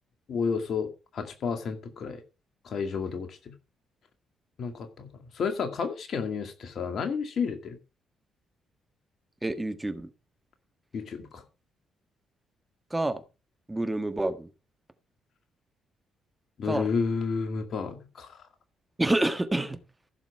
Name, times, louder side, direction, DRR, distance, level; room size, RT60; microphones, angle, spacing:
voice 1, 0.3-2.2 2.6-3.5 4.6-7.8 10.9-11.4 16.6-18.4, left 5 dB, 55° left, 2.3 m, -31 dB
voice 2, 9.4-10.1 12.9-13.2 13.7-14.5 16.6-16.9 19.0-19.8, right 2 dB, 15° right, 1.6 m, -28 dB
15.0 x 7.1 x 4.7 m
hypercardioid pair, 45°, 0 cm